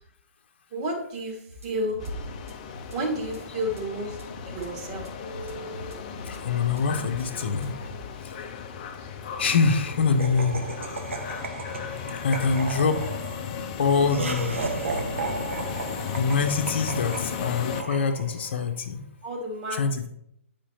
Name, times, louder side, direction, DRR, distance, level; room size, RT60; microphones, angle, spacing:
voice 1, 0.7-2.1 2.9-4.2 4.4-5.1 19.2-19.8, equal, 30° right, -1 dB, 2.2 m, -31 dB
sound 1, 1.5-8.1, left 1 dB, 75° right, 2.6 m, -44 dB
sound 2, 2.0-17.8, left 7 dB, 35° left, 0.7 m, -36 dB
voice 2, 6.2-7.8 8.2-8.3 9.4-10.6 12.2-13.0 13.8-14.5 16.2-19.0 19.7-20.1, left 5 dB, 50° left, 6 dB, 1.0 m, -24 dB
Laughter, 10.2-18.6, right 4 dB, 60° right, 1.2 m, -34 dB
9.9 x 5.2 x 2.9 m, 0.74 s
figure-of-eight pair, 125°, 8 cm